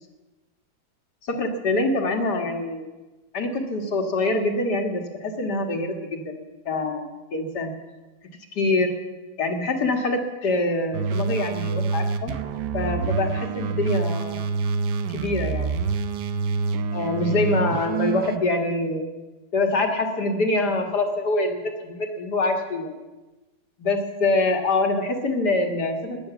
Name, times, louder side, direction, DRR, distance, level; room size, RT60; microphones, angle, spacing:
voice 1, 1.2-2.9 3.3-6.4 6.7-7.7 8.5-8.9 9.4-12.3 12.7-14.4 15.1-15.7 16.9-19.1 19.5-23.0 23.8-26.2, left 2 dB, 75° left, 4 dB, 2.5 m, -25 dB
sound 1, 10.9-18.4, right 5 dB, 85° right, 1.4 m, -27 dB
18.5 x 10.5 x 7.1 m, 1.2 s
omnidirectional pair, 1.8 m